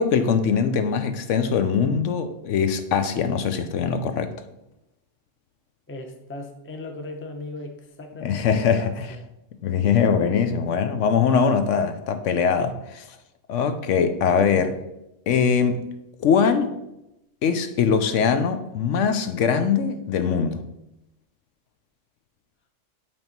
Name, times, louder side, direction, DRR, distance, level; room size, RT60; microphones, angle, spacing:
voice 1, 0.0-4.3 8.2-9.1 9.6-13.1 13.5-14.7 15.3-15.8 16.2-16.7 17.4-20.6, left 6 dB, 75° left, 1.0 m, -22 dB
voice 2, 5.9-9.2 14.3-14.7, left 2 dB, 15° left, 0.6 m, -38 dB
8.6 x 3.6 x 5.2 m
omnidirectional pair, 1.3 m